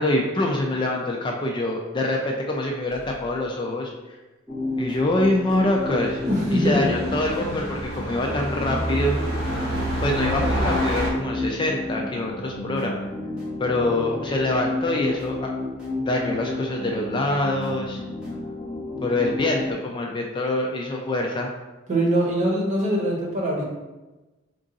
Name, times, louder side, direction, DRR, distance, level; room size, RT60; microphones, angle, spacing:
voice 1, 0.0-4.2 4.8-6.2 6.5-9.2 10.0-12.9 13.6-15.5 16.0-18.0 19.0-21.5, left 2 dB, 25° left, 0 dB, 0.3 m, -25 dB
sound 1, 2.9-3.1 5.6-11.1, right 1 dB, 75° right, 0.9 m, -28 dB
sound 2, 4.5-19.7, left 2 dB, 5° right, 0.8 m, -31 dB
voice 2, 6.3-6.8 21.9-23.6, right 1 dB, 35° right, -2 dB, 0.9 m, -22 dB
3.7 x 2.4 x 3.9 m, 1.1 s
head